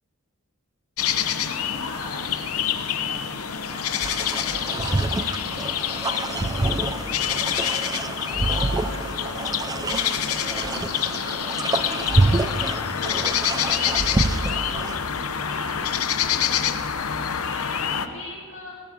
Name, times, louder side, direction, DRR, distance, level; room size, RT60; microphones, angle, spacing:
sound 1, 1.0-18.1, left 8 dB, 85° left, 0.8 m, -27 dB
voice 1, 1.3-5.7 6.1-8.1 8.5-12.4 13.0-15.0 15.5-16.9 17.4-18.8, left 2 dB, 70° left, -7 dB, 2.4 m, -40 dB
sound 2, 4.0-15.0, right 2 dB, 15° right, 0.4 m, -27 dB
16.5 x 9.7 x 8.4 m, 2.1 s
head